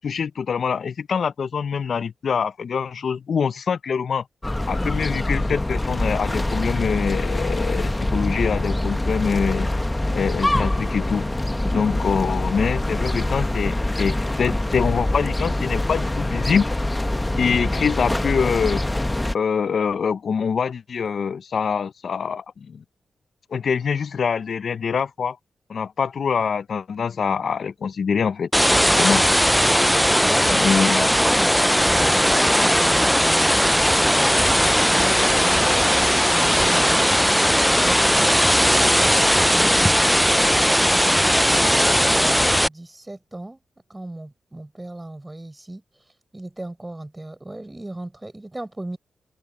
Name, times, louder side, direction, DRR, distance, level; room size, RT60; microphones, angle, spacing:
voice 1, 0.0-4.2 4.7-9.7 10.1-11.3 11.7-16.7 17.4-18.8 19.3-22.8 23.5-25.4 25.7-28.5 29.0-29.2 30.5-31.1, left 6 dB, 65° left, 0.8 m, -24 dB
sound 1, 4.4-19.3, left 1 dB, 15° left, 1.3 m, -24 dB
sound 2, 28.5-42.7, equal, ahead, 0.5 m, -18 dB
voice 2, 30.2-35.6 36.2-38.9 39.3-41.2 41.7-43.6 43.9-45.8 46.3-49.0, right 1 dB, 20° right, 6.8 m, -36 dB
open air
supercardioid pair, 50°, 0 cm